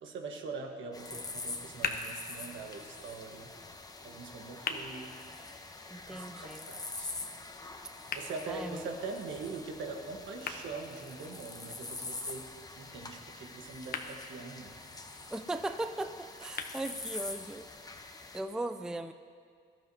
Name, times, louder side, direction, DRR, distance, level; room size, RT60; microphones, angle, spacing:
voice 1, 0.0-3.5 4.0-5.2 6.1-7.1 8.1-14.8, right 4 dB, 75° right, 4 dB, 1.3 m, -43 dB
sound 1, 0.9-18.4, left 3 dB, 20° left, 0.9 m, -45 dB
sound 2, 1.4-17.4, left 5 dB, 50° left, 0.9 m, -45 dB
voice 2, 5.9-6.7 8.5-8.9 15.3-17.7 18.3-19.1, right 2 dB, 5° right, 9 dB, 0.4 m, -38 dB
17.5 x 12.5 x 2.8 m, 2.1 s
cardioid pair, 90°, 20 cm